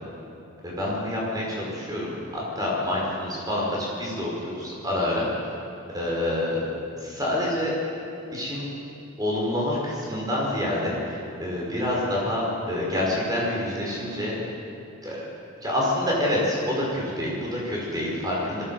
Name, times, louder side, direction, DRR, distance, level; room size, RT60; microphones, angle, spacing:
voice 1, 0.6-5.5 5.9-6.7 7.0-7.7 8.3-8.7 9.2-14.4 15.0-15.2 15.6-18.6, left 1 dB, 20° right, -4 dB, 5.6 m, -27 dB
22.0 x 16.5 x 7.9 m, 2.8 s
head